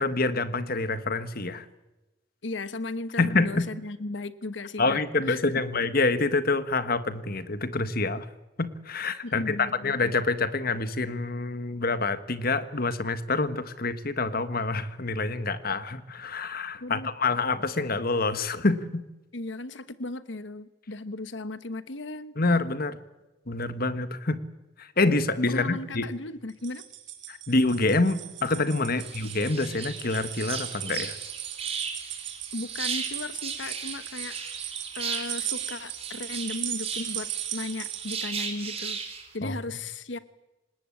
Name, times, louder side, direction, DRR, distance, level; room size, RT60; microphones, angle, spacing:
voice 1, 0.0-1.6 3.2-3.6 4.8-8.3 8.6-19.0 22.4-23.0 23.5-24.4 24.8-26.1 27.3-31.2 39.4-39.5, left 3 dB, 50° left, 11 dB, 1.6 m, -27 dB
voice 2, 2.4-5.0 5.3-5.4 9.2-9.9 16.8-17.1 19.3-22.3 25.5-26.8 28.9-29.0 32.5-34.4 34.9-39.0 39.3-40.2, left 2 dB, 70° left, 13 dB, 1.2 m, -36 dB
sound 1, 26.5-38.2, right 12 dB, 70° right, 3.2 m, -37 dB
sound 2, 29.0-39.3, right 6 dB, 30° right, 3.7 m, -36 dB
27.0 x 19.5 x 8.7 m, 1.0 s
head